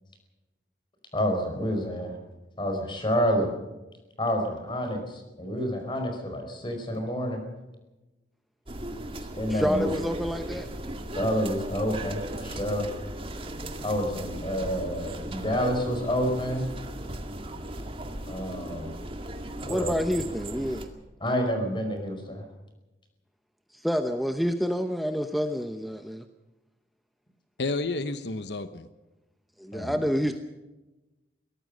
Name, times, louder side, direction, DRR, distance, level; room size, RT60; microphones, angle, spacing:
voice 1, 1.1-2.1 2.6-3.5 4.2-7.4 9.2-9.9 11.1-12.9 13.8-16.7 18.3-19.0 19.6-19.9 21.2-22.5 29.7-30.0, equal, 30° left, 5 dB, 5.0 m, -28 dB
sound 1, 8.7-20.9, right 1 dB, 30° right, 2.1 m, -37 dB
voice 2, 9.5-10.7 19.7-20.9 23.7-26.3 29.6-30.4, equal, ahead, 6 dB, 0.8 m, -28 dB
voice 3, 27.6-28.9, left 3 dB, 75° left, 11 dB, 1.0 m, -30 dB
23.0 x 17.5 x 6.6 m, 1.1 s
head